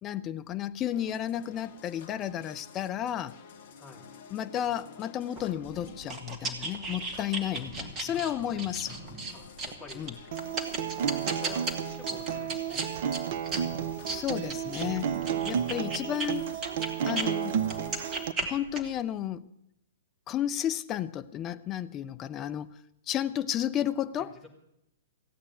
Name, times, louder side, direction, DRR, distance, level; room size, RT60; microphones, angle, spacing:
voice 1, 0.0-3.4 4.3-9.0 10.0-10.1 14.1-15.1 15.5-16.6 17.1-17.6 18.4-19.4 20.3-22.7 23.1-24.3, left 11 dB, 25° left, 11 dB, 0.6 m, -32 dB
sound 1, 0.9-18.2, left 7 dB, 50° left, 1.2 m, -52 dB
sound 2, 5.4-17.3 17.6-19.0, right 3 dB, 20° right, 1.9 m, -36 dB
voice 2, 8.1-8.5 9.3-10.1 11.1-12.8 14.8-15.6 24.2-24.5, left 2 dB, 5° left, -2 dB, 3.1 m, -51 dB
Acoustic guitar, 10.3-18.3, right 9 dB, 45° right, 0.6 m, -32 dB
15.5 x 8.6 x 9.1 m, 0.81 s
figure-of-eight pair, 110°, 0 cm